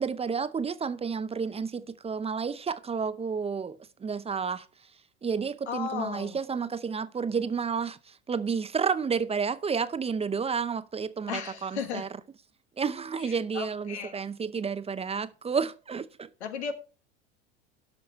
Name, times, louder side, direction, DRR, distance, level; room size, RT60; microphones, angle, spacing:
voice 1, 0.0-4.6 5.2-8.0 8.3-12.1 12.8-16.3, right 6 dB, 20° right, 0.6 m, -31 dB
voice 2, 5.7-6.4 11.3-12.1 13.2-14.2 16.4-16.7, left 7 dB, 85° left, 1.5 m, -35 dB
12.5 x 5.9 x 4.6 m
hypercardioid pair, 85°, 32 cm